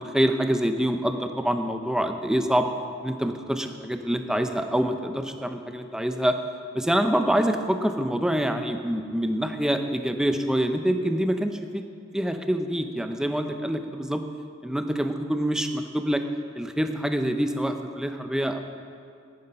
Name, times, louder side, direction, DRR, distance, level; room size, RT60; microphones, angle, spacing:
voice 1, 0.0-2.7 3.0-6.4 6.7-11.8 12.1-14.2 14.6-16.2 16.6-18.6, equal, 5° right, 7 dB, 0.5 m, -26 dB
9.8 x 9.2 x 5.6 m, 2.3 s
head